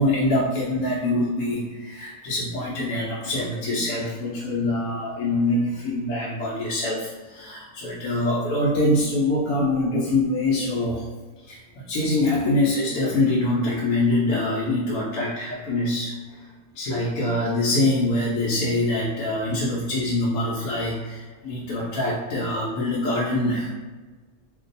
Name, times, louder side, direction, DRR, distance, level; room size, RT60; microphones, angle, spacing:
voice 1, 0.0-11.0 11.5-16.2 16.8-23.7, left 1 dB, 80° left, -6 dB, 1.1 m, -24 dB
2.6 x 2.2 x 3.8 m, 1.3 s
omnidirectional pair, 1.5 m